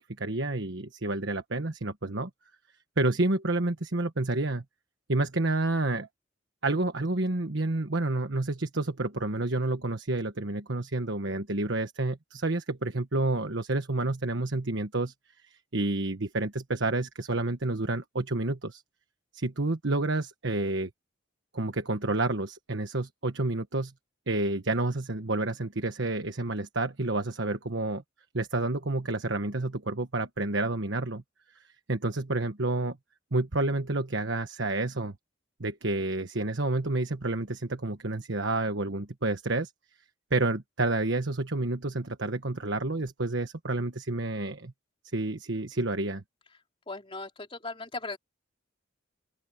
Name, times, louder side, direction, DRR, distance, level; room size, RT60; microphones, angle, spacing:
voice 1, 0.0-2.3 3.0-4.6 5.1-6.1 6.6-15.1 15.7-18.8 19.3-20.9 21.5-23.9 24.3-28.0 28.3-31.2 31.9-33.0 33.3-35.1 35.6-39.7 40.3-44.7 45.1-46.2, right 2 dB, 65° right, 1.3 m, -29 dB
voice 2, 46.9-48.2, left 3 dB, 25° left, 3.4 m, -38 dB
open air
head